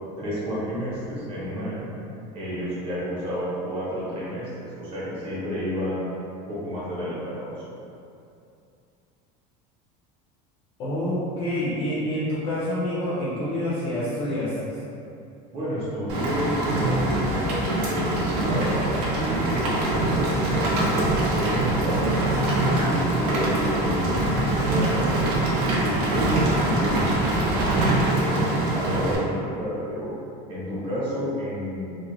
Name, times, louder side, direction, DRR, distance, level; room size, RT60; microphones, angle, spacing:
voice 1, 0.0-1.9 2.3-6.0 6.5-7.6 15.5-20.9 21.4-22.4 22.8-25.4 25.7-30.1 30.5-32.0, equal, 30° right, -9 dB, 0.8 m, -30 dB
voice 2, 10.8-14.8, left 1 dB, 30° left, -9 dB, 0.4 m, -27 dB
Rain, 16.1-29.2, right 1 dB, 90° right, 0.6 m, -23 dB
2.3 x 2.1 x 3.0 m, 2.6 s
cardioid pair, 170°, 19 cm